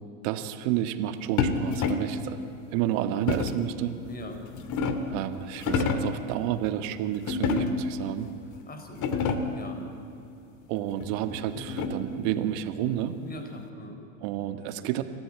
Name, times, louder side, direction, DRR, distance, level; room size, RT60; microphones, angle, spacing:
voice 1, 0.2-2.4 2.7-3.9 5.1-8.3 10.7-13.2 14.2-15.0, right 12 dB, 65° right, 9 dB, 1.8 m, -30 dB
sound 1, 1.4-2.2 3.3-3.7 4.3-5.2 5.6-6.2 7.3-8.0 8.5-8.6 8.9-9.6 11.0-12.2, left 4 dB, 45° left, 2.3 m, -28 dB
voice 2, 4.1-4.4 8.7-9.8 13.2-14.0, left 1 dB, 20° left, 5 dB, 4.2 m, -42 dB
28.5 x 14.5 x 8.8 m, 2.8 s
supercardioid pair, 110°, 42 cm